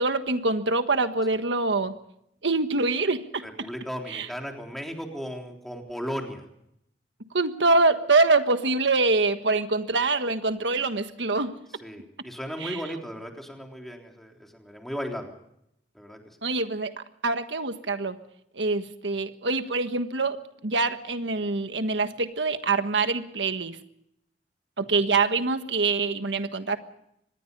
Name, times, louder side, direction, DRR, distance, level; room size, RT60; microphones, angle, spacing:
voice 1, 0.0-1.9 2.4-3.7 4.1-4.3 7.3-11.5 12.6-12.8 16.4-18.2 18.5-20.4 20.6-23.8 24.8-26.8, right 3 dB, 85° right, 8 dB, 1.5 m, -25 dB
voice 2, 3.4-6.4 11.8-15.3 16.0-16.2, equal, ahead, 2 dB, 3.6 m, -36 dB
25.5 x 20.5 x 5.5 m, 0.77 s
head